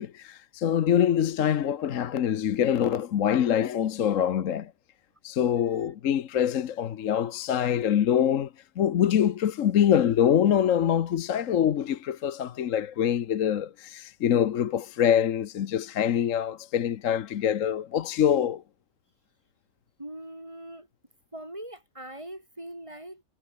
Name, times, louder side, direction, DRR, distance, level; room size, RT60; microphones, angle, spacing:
voice 1, 0.0-4.7 5.2-18.6, left 9 dB, 65° left, 1.2 m, -25 dB
voice 2, 20.0-20.9 21.3-23.2, right 1 dB, 20° right, 5.8 m, -41 dB
omnidirectional pair, 1.5 m